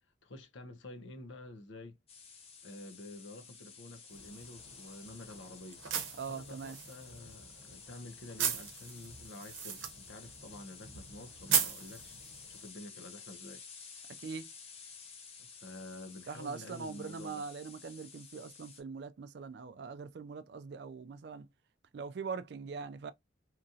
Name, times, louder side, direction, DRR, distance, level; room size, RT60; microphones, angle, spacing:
voice 1, 0.2-2.0 2.6-5.8 6.3-12.2 12.5-13.6 15.4-17.5, left 2 dB, 70° left, 0.6 m, -49 dB
sound 1, 2.1-18.8, left 5 dB, 30° left, 0.6 m, -53 dB
sound 2, 4.1-12.7, right 8 dB, 85° right, 0.7 m, -38 dB
voice 2, 6.2-6.8 14.2-14.5 16.3-21.5 21.9-23.1, right 5 dB, 55° right, 0.3 m, -42 dB
2.9 x 2.4 x 2.6 m
head